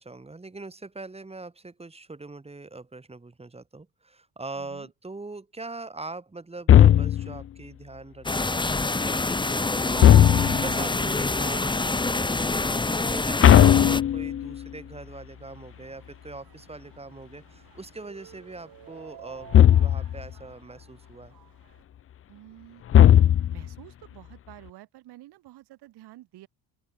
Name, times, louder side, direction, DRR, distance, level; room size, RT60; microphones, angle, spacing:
voice 1, 0.0-21.3, right 3 dB, 15° right, 5.4 m, -42 dB
voice 2, 4.5-4.9 22.3-22.8 23.5-26.5, right 16 dB, 90° right, 6.9 m, -49 dB
sound 1, 6.7-7.4 10.0-10.8 13.4-14.6 19.5-20.2 22.9-23.7, left 10 dB, 35° left, 0.5 m, -16 dB
sound 2, 8.3-14.0, left 3 dB, 10° left, 1.5 m, -26 dB
sound 3, 9.9-21.8, right 12 dB, 60° right, 3.7 m, -48 dB
open air
cardioid pair, 130°, 38 cm